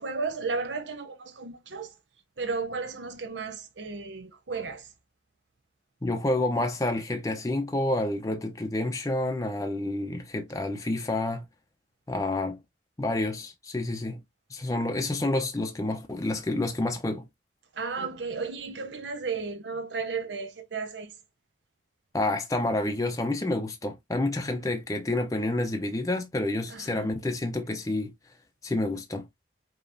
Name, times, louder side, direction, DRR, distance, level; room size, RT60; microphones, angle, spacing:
voice 1, 0.0-2.0 2.4-4.9 17.7-21.2 26.7-27.2, right 4 dB, 90° right, 0.8 m, -34 dB
voice 2, 6.0-11.5 12.1-12.6 13.0-14.2 14.5-17.3 22.1-28.1 28.6-29.3, left 2 dB, 20° left, 0.5 m, -29 dB
5.2 x 2.9 x 2.5 m
head